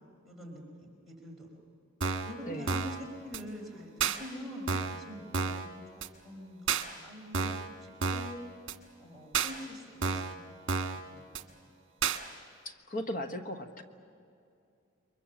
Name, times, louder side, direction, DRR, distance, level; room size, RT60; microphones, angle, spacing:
voice 1, 0.2-1.5 2.2-8.4 9.0-10.8 11.1-11.5, equal, ahead, -4 dB, 4.5 m, -45 dB
sound 1, 2.0-2.3 2.7-3.0 3.3-3.4 4.0-4.2 4.7-5.0 5.3-5.7 6.0-6.1 6.7-6.8 7.3-7.7 8.0-8.3 8.7-8.8 9.3-9.5 10.0-10.3 10.7-11.0 11.3-11.4 12.0-12.2, right 5 dB, 60° right, 1.5 m, -30 dB
voice 2, 2.5-2.8 12.6-13.8, equal, 40° left, 6 dB, 1.3 m, -37 dB
29.0 x 23.0 x 7.2 m, 2.5 s
head